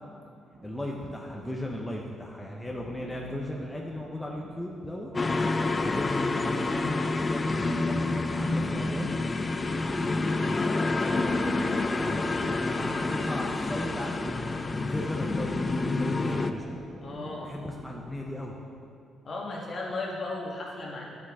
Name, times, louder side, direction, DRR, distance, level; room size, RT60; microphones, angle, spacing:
sound 1, 0.5-18.6, right 2 dB, 50° right, 1.6 m, -50 dB
voice 1, 0.6-5.1 5.8-9.1 9.7-14.3 14.7-16.8 17.4-18.6, left 1 dB, 5° left, -1 dB, 0.7 m, -37 dB
sound 2, 5.1-16.5, left 3 dB, 25° left, 0.3 m, -28 dB
voice 2, 17.0-17.5 19.2-21.1, left 2 dB, 45° left, -2 dB, 1.5 m, -35 dB
9.3 x 6.1 x 3.6 m, 2.4 s
cardioid pair, 90°, 0 cm